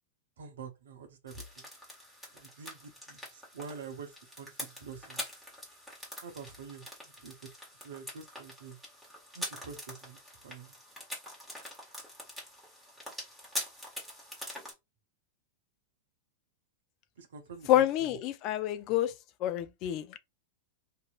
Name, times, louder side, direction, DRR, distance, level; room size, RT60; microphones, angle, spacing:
voice 1, 0.4-1.7 2.3-5.2 6.2-6.8 7.2-7.5 7.8-8.8 9.3-10.2 10.4-10.7 17.2-17.7 18.0-18.2, right 5 dB, 70° right, 0.8 m, -46 dB
sound 1, 1.3-14.7, left 1 dB, ahead, 1.4 m, -44 dB
voice 2, 17.7-19.1 19.4-20.2, left 12 dB, 40° left, 0.4 m, -28 dB
2.8 x 2.6 x 2.4 m
figure-of-eight pair, 100°, 0 cm